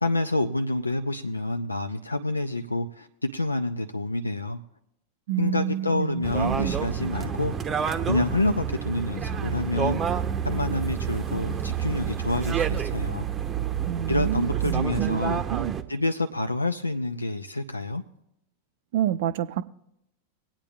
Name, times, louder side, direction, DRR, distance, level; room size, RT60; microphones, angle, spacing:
voice 1, 0.0-4.6 5.4-7.6 8.1-13.3 14.1-15.4 15.9-18.0, left 2 dB, 80° left, 0.4 m, -28 dB
voice 2, 5.3-6.8 13.8-15.8 18.9-19.6, right 11 dB, 55° right, 0.5 m, -29 dB
sound 1, 6.2-15.8, right 8 dB, 20° right, 0.7 m, -29 dB
24.5 x 8.8 x 2.3 m
figure-of-eight pair, 90°, 0 cm